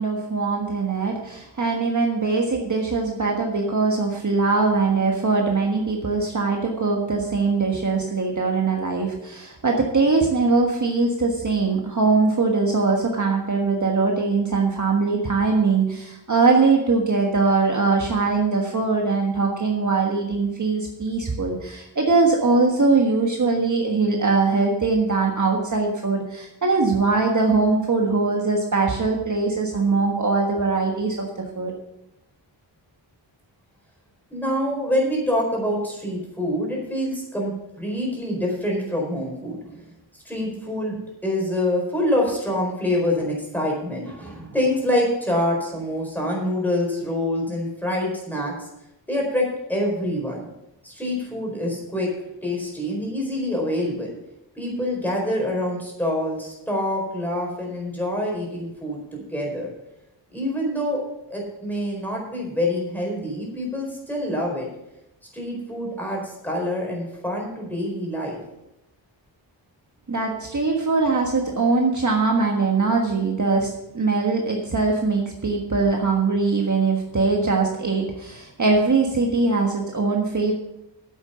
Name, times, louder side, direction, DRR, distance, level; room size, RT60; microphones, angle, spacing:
voice 1, 0.0-31.3 31.5-31.8 70.1-80.5, right 4 dB, 40° right, 0 dB, 1.5 m, -21 dB
voice 2, 34.3-37.5 37.8-39.8 40.2-41.0 41.2-48.7 49.1-50.5 50.8-52.1 52.4-54.1 54.6-59.7 60.3-61.0 61.3-64.7 65.3-68.4, left 1 dB, 5° left, -2 dB, 4.5 m, -26 dB
9.6 x 8.1 x 6.9 m, 0.88 s
wide cardioid pair, 115°, 45 cm